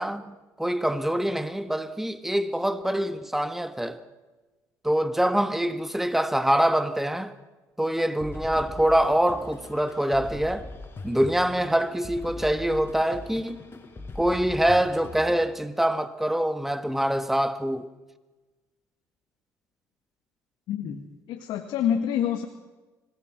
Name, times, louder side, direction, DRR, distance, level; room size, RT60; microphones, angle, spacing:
voice 1, 0.0-4.0 4.8-7.3 7.8-10.6 11.0-13.6 14.1-17.9 20.8-21.0, right 1 dB, 5° right, 1.6 m, -25 dB
sound 1, 8.2-15.5, left 3 dB, 30° left, 4.9 m, -41 dB
voice 2, 20.7-21.0 21.3-22.5, left 9 dB, 70° left, 1.8 m, -27 dB
26.0 x 17.5 x 6.2 m
hypercardioid pair, 65°, 8 cm